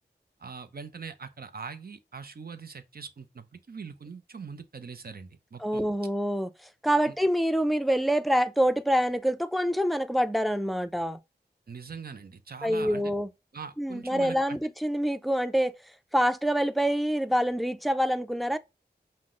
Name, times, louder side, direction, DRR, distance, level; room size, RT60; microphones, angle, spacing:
voice 1, 0.4-5.8 11.7-13.0 13.5-14.6, right 5 dB, 60° right, 0.7 m, -42 dB
voice 2, 5.6-6.5 6.8-11.2 12.6-13.3 13.8-15.7 16.1-18.6, equal, ahead, 0.5 m, -26 dB
5.7 x 2.1 x 3.7 m
cardioid pair, 45°, 18 cm